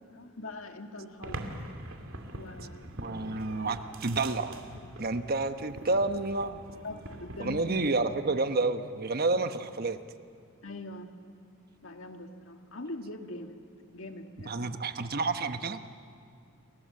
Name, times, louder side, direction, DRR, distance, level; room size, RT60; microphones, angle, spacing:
voice 1, 0.0-1.5 2.3-3.2 4.1-4.2 6.8-7.8 9.3-9.6 10.6-11.1 11.8-13.6 13.9-14.6, left 2 dB, 65° left, 5 dB, 1.9 m, -43 dB
sound 1, 1.2-7.9, right 1 dB, 70° right, 2.4 m, -43 dB
voice 2, 2.9-4.6 5.0-6.6 7.4-10.0 14.5-15.8, right 3 dB, 45° right, 9 dB, 1.1 m, -29 dB
29.0 x 22.0 x 7.8 m, 2.3 s
head